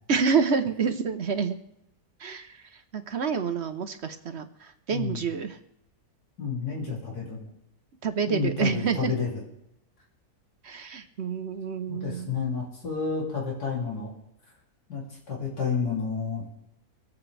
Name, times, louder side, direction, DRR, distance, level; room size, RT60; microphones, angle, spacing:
voice 1, 0.1-1.6 2.2-2.6 2.9-5.6 8.0-9.1 10.6-12.4, right 5 dB, 50° right, 8 dB, 1.0 m, -28 dB
voice 2, 4.9-5.2 6.4-7.4 8.3-9.4 11.9-14.1 14.9-15.0 15.3-16.4, left 5 dB, 80° left, -4 dB, 3.6 m, -30 dB
24.5 x 8.4 x 3.4 m, 0.81 s
omnidirectional pair, 1.6 m